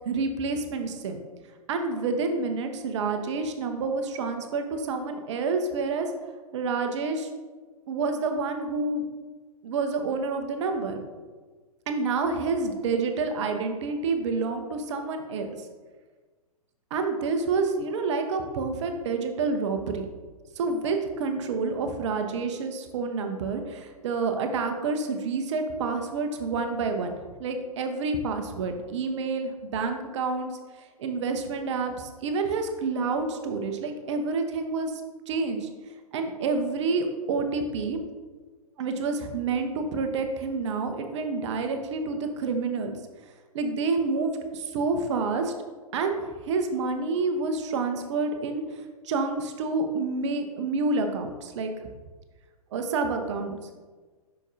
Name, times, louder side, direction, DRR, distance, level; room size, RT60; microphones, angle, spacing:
voice 1, 0.0-1.2 1.7-6.1 6.5-7.3 7.9-9.1 9.6-11.0 11.9-15.5 16.9-20.0 20.6-30.5 30.8-35.7 36.1-38.0 38.8-43.0 43.5-45.5 45.9-51.7 52.7-53.6, right 4 dB, 50° right, 6 dB, 0.8 m, -28 dB
8.1 x 5.8 x 2.7 m, 1.4 s
figure-of-eight pair, 110°, 20 cm